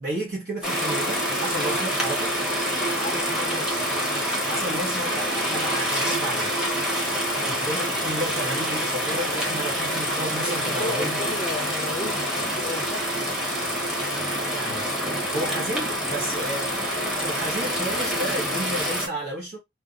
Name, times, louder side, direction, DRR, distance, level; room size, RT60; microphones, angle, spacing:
voice 1, 0.0-2.3 4.4-6.5 7.4-11.2 14.3-14.9 15.3-19.6, right 1 dB, 60° right, 1.1 m, -32 dB
sound 1, 0.6-19.1, equal, 5° right, 1.0 m, -26 dB
voice 2, 2.9-3.9 10.5-13.1, left 3 dB, 25° left, 0.6 m, -34 dB
2.6 x 2.3 x 3.6 m
head